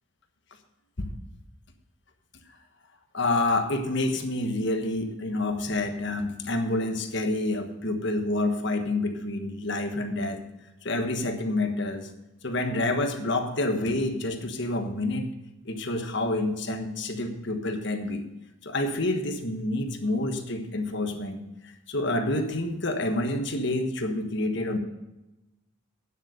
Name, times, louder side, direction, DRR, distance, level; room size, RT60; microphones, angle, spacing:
voice 1, 3.1-10.4 10.8-12.1 12.4-15.3 15.6-18.2 18.6-24.8, left 2 dB, 55° left, 6 dB, 1.3 m, -28 dB
9.5 x 8.0 x 6.4 m, 0.97 s
head